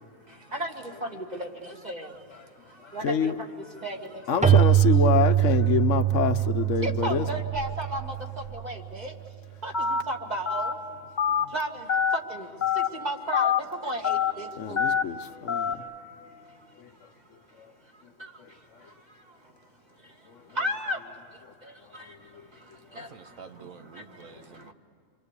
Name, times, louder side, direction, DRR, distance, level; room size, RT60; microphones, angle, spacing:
voice 1, 1.0-2.1 2.9-3.3 3.8-4.2 6.8-8.1 8.6-9.1 9.6-9.7 10.1-10.7 11.5-11.8 12.3-12.5 12.9-13.5 13.8-14.8 20.6-21.0 21.9-22.0 23.0-23.1, right 1 dB, 30° right, 2.4 m, -33 dB
voice 2, 3.0-3.3 4.3-7.3 14.6-15.8, left 7 dB, 65° left, 1.1 m, -26 dB
Keyboard (musical), 4.4-8.9, right 12 dB, 10° right, 0.3 m, -23 dB
Telephone, 9.7-10.0 10.5-10.7 11.2-11.4 11.9-12.2 12.6-12.9 13.3-13.6 14.0-14.3 14.8-15.0 15.5-15.7, left 7 dB, 35° left, 1.1 m, -24 dB
voice 3, 22.9-24.7, right 6 dB, 75° right, 1.5 m, -48 dB
28.5 x 24.5 x 8.3 m
omnidirectional pair, 1.4 m